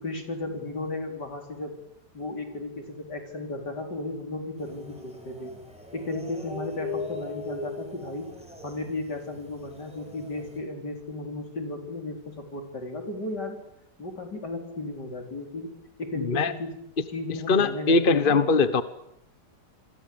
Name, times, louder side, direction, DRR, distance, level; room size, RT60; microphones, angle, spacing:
voice 1, 0.0-1.7 2.1-5.5 5.9-8.3 8.6-13.6 14.0-15.7 16.0-16.7 17.1-18.4, left 2 dB, 70° left, 4 dB, 5.3 m, -34 dB
sound 1, 4.6-10.6, left 3 dB, 5° right, 7.0 m, -40 dB
voice 2, 16.2-16.5 17.5-18.8, left 4 dB, 35° left, 12 dB, 1.3 m, -21 dB
28.0 x 23.0 x 8.8 m, 0.76 s
omnidirectional pair, 1.8 m